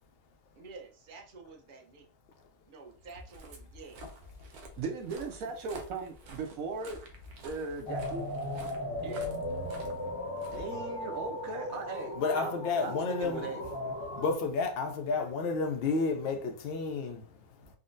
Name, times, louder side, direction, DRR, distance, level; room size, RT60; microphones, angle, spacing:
voice 1, 0.5-2.1 2.7-4.0 9.0-9.3, right 4 dB, 50° right, 0.6 m, -48 dB
Walk footsteps, 3.0-11.3, right 1 dB, 90° right, 1.2 m, -49 dB
voice 2, 4.8-7.0 7.4-8.2 10.5-12.5 12.8-12.9 13.2-13.6, right 4 dB, 70° right, 1.1 m, -37 dB
sound 1, 7.9-14.3, left 1 dB, 5° right, 0.9 m, -37 dB
voice 3, 12.1-13.5 14.2-17.2, left 4 dB, 70° left, 0.5 m, -31 dB
3.7 x 2.1 x 2.5 m
omnidirectional pair, 1.6 m